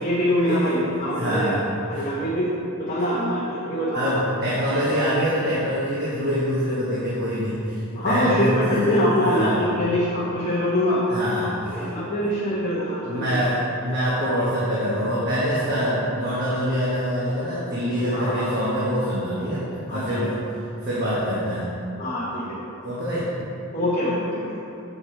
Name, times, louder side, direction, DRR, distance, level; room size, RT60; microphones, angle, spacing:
voice 1, 0.0-1.6 1.9-2.5 2.8-4.1 7.9-11.1 11.4-13.4 18.1-18.5 19.9-20.2 22.0-22.7 23.7-24.6, equal, 35° left, -7 dB, 0.9 m, -24 dB
voice 2, 1.2-1.6 1.9-2.0 3.9-9.7 11.1-11.9 13.1-20.4 20.8-21.7 22.8-23.3, equal, 45° right, -8 dB, 1.2 m, -25 dB
7.0 x 5.1 x 4.5 m, 2.8 s
head